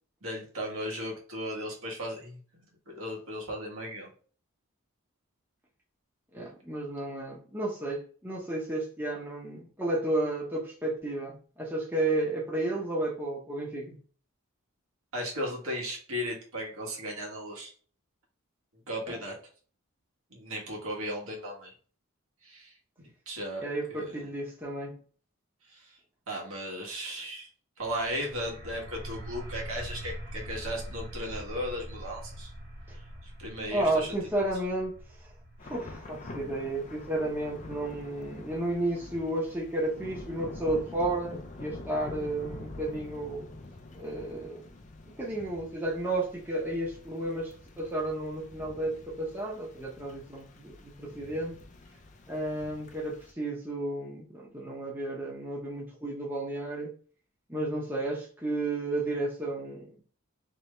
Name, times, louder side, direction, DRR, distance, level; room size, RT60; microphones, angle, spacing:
voice 1, 0.2-2.4 2.9-4.1 15.1-17.7 18.9-19.4 20.3-21.7 22.4-24.2 25.7-26.0 26.3-27.5 27.8-32.5 33.2-34.2, equal, 75° right, -2 dB, 1.4 m, -36 dB
voice 2, 6.3-14.0 19.1-19.2 23.6-24.9 33.7-34.9 35.2-35.3 35.6-43.4 43.9-44.6 45.1-51.6 52.3-56.9 57.5-59.9, right 1 dB, 10° right, -3 dB, 0.8 m, -32 dB
sound 1, 27.8-39.3, equal, 45° right, 1.2 m, -44 dB
Thunder / Rain, 35.6-53.3, left 2 dB, 35° left, 0.4 m, -46 dB
3.3 x 3.1 x 3.2 m, 0.42 s
head